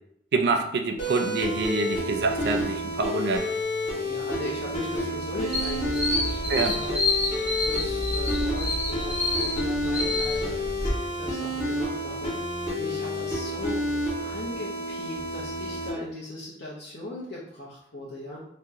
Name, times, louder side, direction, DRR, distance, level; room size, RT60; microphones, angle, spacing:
voice 1, 0.3-3.5 6.5-6.8, right 3 dB, 70° right, 6 dB, 0.3 m, -26 dB
sound 1, 1.0-15.9, left 1 dB, 50° left, 1.3 m, -30 dB
voice 2, 3.9-10.6 11.2-12.3 12.7-13.8 14.2-18.4, left 1 dB, 65° left, -7 dB, 0.7 m, -38 dB
sound 2, 5.5-10.9, left 2 dB, 20° left, 1.1 m, -28 dB
2.8 x 2.1 x 3.5 m, 0.72 s
head